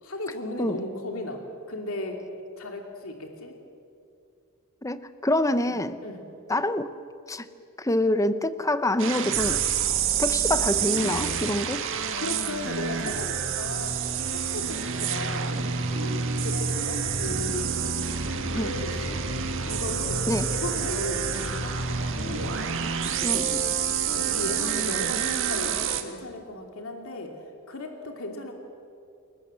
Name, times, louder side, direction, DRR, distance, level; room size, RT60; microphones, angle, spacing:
voice 1, 0.0-2.2 2.6-3.5 5.6-6.3 12.2-15.6 15.9-17.8 18.5-19.2 19.7-22.5 23.2-23.8 24.1-27.3 27.7-28.5, left 2 dB, 65° left, 3 dB, 2.8 m, -36 dB
voice 2, 4.8-6.0 6.5-6.9 7.3-7.4 7.8-9.6 10.2-11.8 18.5-18.7 20.3-20.5 23.2-23.6, left 1 dB, 15° left, 12 dB, 0.9 m, -26 dB
sound 1, 9.0-26.0, right 6 dB, 60° right, 1.8 m, -28 dB
29.0 x 19.5 x 7.7 m, 2.5 s
head